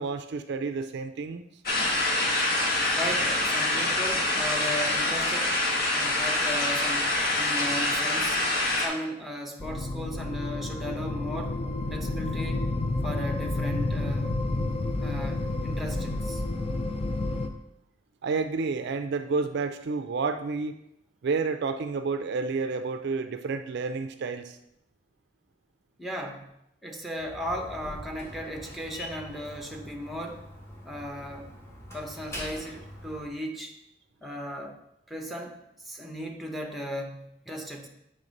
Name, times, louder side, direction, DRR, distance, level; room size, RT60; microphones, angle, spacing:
voice 1, 0.0-1.4 18.2-20.8 21.2-24.6, right 4 dB, 60° right, 9 dB, 0.4 m, -30 dB
sound 1, 1.7-8.9, left 2 dB, 55° left, 1.3 m, -26 dB
voice 2, 2.9-5.6 5.9-8.4 8.8-11.6 11.9-12.7 13.0-14.4 15.0-16.4 26.0-26.5 26.8-30.4 30.8-31.5 31.9-33.8 34.2-34.8 35.1-37.9, equal, ahead, 2 dB, 0.7 m, -36 dB
sound 2, 9.6-17.5, left 2 dB, 30° left, 0.5 m, -30 dB
Slam, 27.1-33.3, equal, 15° left, 1.3 m, -43 dB
7.8 x 3.3 x 5.2 m, 0.82 s
head